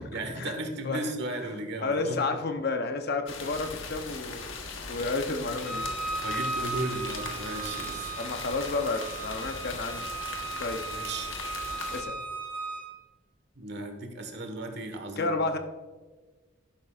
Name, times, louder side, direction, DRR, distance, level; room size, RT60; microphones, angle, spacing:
voice 1, 0.1-2.2 6.2-8.1 10.9-11.3 13.6-15.4, right 2 dB, 60° right, 6 dB, 1.4 m, -35 dB
voice 2, 0.8-1.1 1.4-1.5 1.8-4.5 4.8-5.9 8.2-10.1 10.6-10.8 11.9-12.2 15.2-15.6, left 3 dB, 55° left, 6 dB, 0.9 m, -31 dB
sound 1, 3.3-12.0, left 4 dB, 90° left, 1.3 m, -39 dB
Bowed string instrument, 5.6-12.8, right 3 dB, 25° right, 3.5 m, -36 dB
12.0 x 10.5 x 2.5 m, 1.3 s
head